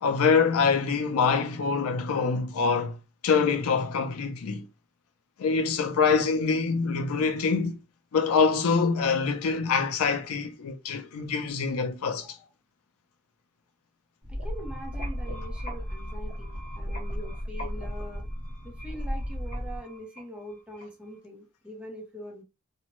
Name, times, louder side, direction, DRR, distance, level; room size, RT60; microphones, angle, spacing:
voice 1, 0.0-3.0 3.2-4.7 5.4-7.8 8.1-12.3, left 5 dB, 80° left, 0.4 m, -25 dB
voice 2, 12.1-12.5 14.3-18.2 18.6-22.4, equal, 5° right, 0.6 m, -43 dB
sound 1, 14.2-19.8, equal, 50° right, 1.1 m, -34 dB
sound 2, 14.4-21.2, equal, 30° left, 1.0 m, -47 dB
2.6 x 2.0 x 2.9 m
head